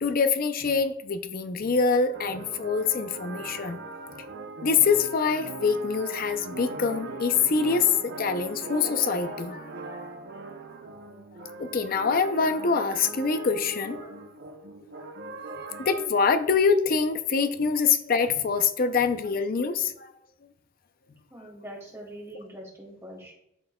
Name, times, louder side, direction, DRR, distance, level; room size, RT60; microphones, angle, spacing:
voice 1, 0.0-3.8 4.6-10.0 11.6-14.3 15.7-20.1, left 5 dB, 45° left, 10 dB, 0.5 m, -25 dB
sound 1, 2.1-16.1, right 3 dB, 55° right, 0.7 m, -40 dB
voice 2, 21.3-23.3, right 1 dB, 15° right, -2 dB, 2.1 m, -43 dB
11.5 x 4.4 x 2.3 m, 0.79 s
head